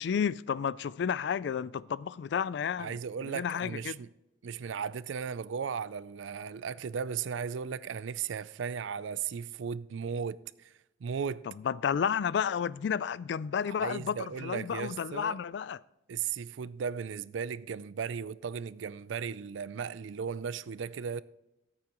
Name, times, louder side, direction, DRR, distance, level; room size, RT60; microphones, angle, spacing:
voice 1, 0.0-3.0 3.2-4.0 11.6-15.8, left 7 dB, 65° left, 0.3 m, -31 dB
voice 2, 2.8-4.1 4.4-10.7 11.0-11.4 13.6-15.4 16.1-21.2, right 6 dB, 80° right, 0.4 m, -36 dB
15.0 x 8.6 x 3.0 m
head